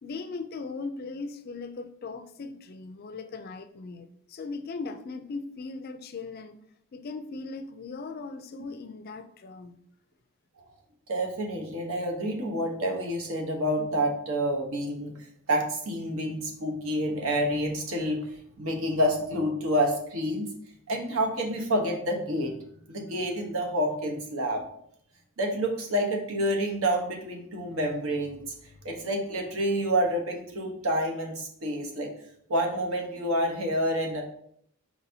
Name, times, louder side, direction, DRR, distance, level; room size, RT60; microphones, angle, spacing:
voice 1, 0.0-6.6 6.9-9.7, left 4 dB, 45° left, 9 dB, 0.3 m, -38 dB
voice 2, 11.1-15.1 15.5-18.2 18.6-20.5 20.9-22.5 22.9-24.6 25.4-28.4 28.8-32.1 32.5-34.2, equal, 75° right, 1 dB, 1.0 m, -28 dB
4.7 x 4.0 x 2.7 m, 0.68 s
head